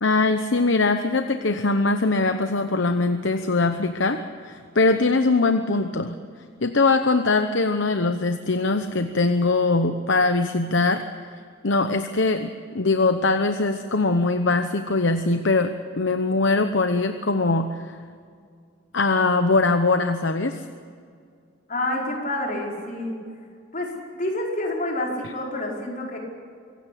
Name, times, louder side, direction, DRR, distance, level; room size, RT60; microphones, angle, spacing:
voice 1, 0.0-6.2 6.6-11.0 11.6-15.7 16.0-18.0 18.9-20.6, left 3 dB, 60° left, 8 dB, 0.9 m, -22 dB
voice 2, 21.7-23.1 23.7-26.2, left 1 dB, 40° left, -1 dB, 5.0 m, -28 dB
25.0 x 16.5 x 8.5 m, 2.2 s
head